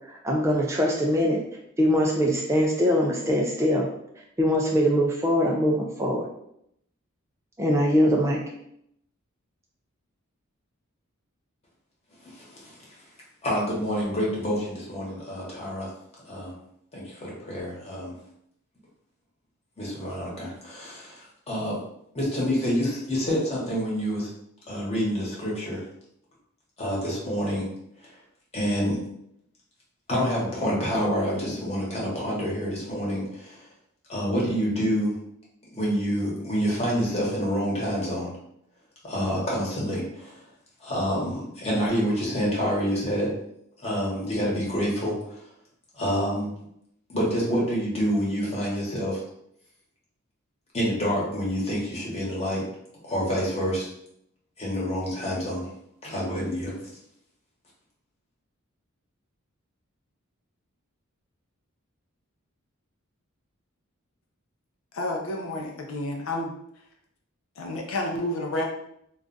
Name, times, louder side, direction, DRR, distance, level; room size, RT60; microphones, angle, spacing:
voice 1, 0.1-1.4 1.8-3.9 4.4-6.3 7.6-8.4, equal, 15° right, -1 dB, 0.3 m, -22 dB
voice 2, 12.2-13.0 13.4-15.9 16.2-16.5 16.9-18.1 19.8-21.8 22.1-24.3 24.7-25.8 26.8-27.7 28.0-28.1 28.5-29.0 30.1-33.6 34.1-35.1 35.7-38.3 39.0-40.4 40.8-43.3 43.8-45.4 45.9-46.5 47.1-49.2 50.7-52.6 53.0-53.9 54.6-55.7 56.0-56.7, equal, 30° left, -5 dB, 1.1 m, -27 dB
voice 3, 64.9-66.5 67.6-68.6, left 1 dB, 70° left, 1 dB, 0.5 m, -30 dB
2.4 x 2.3 x 3.8 m, 0.74 s
head